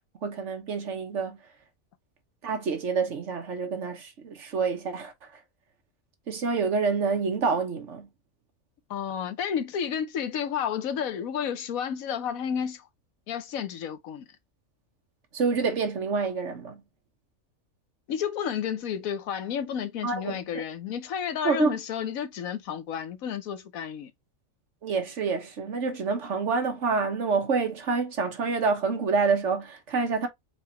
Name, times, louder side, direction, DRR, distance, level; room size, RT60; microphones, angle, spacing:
voice 1, 0.2-1.4 2.4-5.1 6.3-8.1 15.3-16.8 20.0-20.4 21.4-21.8 24.8-30.3, right 4 dB, 60° right, 1.4 m, -27 dB
voice 2, 8.9-12.9 13.3-14.2 18.1-24.1, left 8 dB, 85° left, 1.2 m, -31 dB
4.8 x 3.4 x 2.9 m
omnidirectional pair, 1.4 m